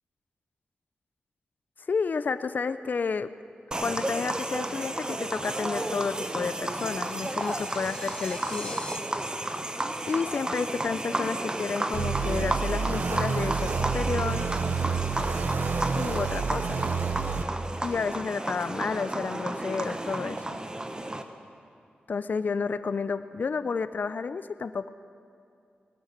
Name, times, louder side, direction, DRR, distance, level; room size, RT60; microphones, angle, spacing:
voice 1, 1.9-3.3 3.8-8.8 10.1-14.5 15.9-16.8 17.8-20.6 22.1-24.9, left 5 dB, 60° left, 13 dB, 0.5 m, -31 dB
sound 1, 3.7-21.2, right 1 dB, 25° right, 1.0 m, -32 dB
sound 2, 6.7-9.0, left 2 dB, 25° left, 0.8 m, -44 dB
sound 3, 11.9-17.4, right 5 dB, 70° right, 0.6 m, -29 dB
19.5 x 8.9 x 6.8 m, 2.4 s
cardioid pair, 55°, 3 cm